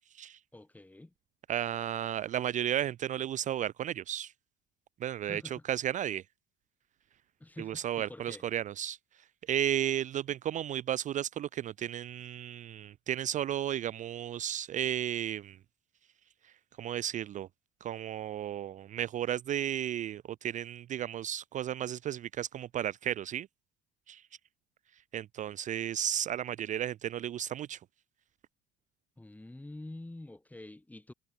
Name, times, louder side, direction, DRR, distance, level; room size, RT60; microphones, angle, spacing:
voice 1, 0.5-1.1 5.2-5.7 7.4-8.5 29.2-31.1, left 1 dB, 10° left, 1.8 m, -47 dB
voice 2, 1.5-4.3 5.0-6.2 7.6-9.0 9.5-15.6 16.4-17.5 17.8-23.5 24.1-24.2 25.1-27.8, right 11 dB, 45° right, 0.5 m, -34 dB
supercardioid pair, 80°, 18 cm